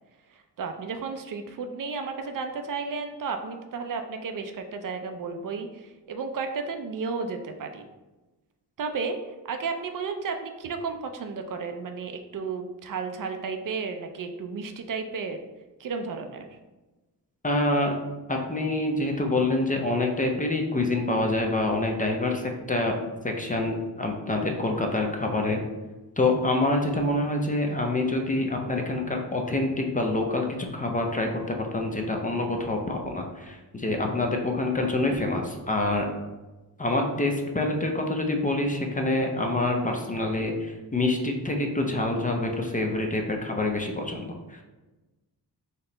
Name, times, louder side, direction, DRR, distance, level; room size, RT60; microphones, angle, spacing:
voice 1, 0.3-7.9 8.8-9.2 9.4-15.4 15.8-16.6, right 4 dB, 55° right, 5 dB, 0.4 m, -33 dB
voice 2, 17.4-17.9 18.3-23.0 23.2-25.6 26.2-36.1 36.8-44.6, left 2 dB, 20° left, 2 dB, 0.5 m, -26 dB
4.2 x 2.0 x 3.8 m, 1.1 s
cardioid pair, 85°, 40 cm